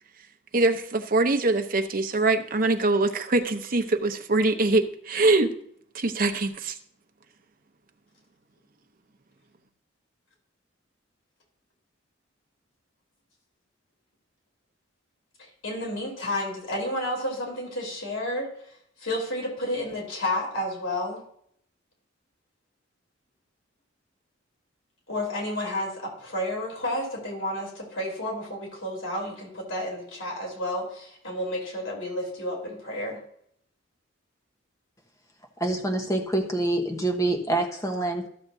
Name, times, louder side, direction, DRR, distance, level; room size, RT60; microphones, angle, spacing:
voice 1, 0.5-5.5 5.9-6.8, right 2 dB, 45° right, 0.8 m, -23 dB
voice 2, 15.4-18.5 19.0-21.2 25.1-33.2, left 1 dB, 80° left, 3.3 m, -31 dB
voice 3, 35.6-38.3, right 2 dB, 15° left, 1.1 m, -26 dB
13.5 x 7.2 x 2.7 m
head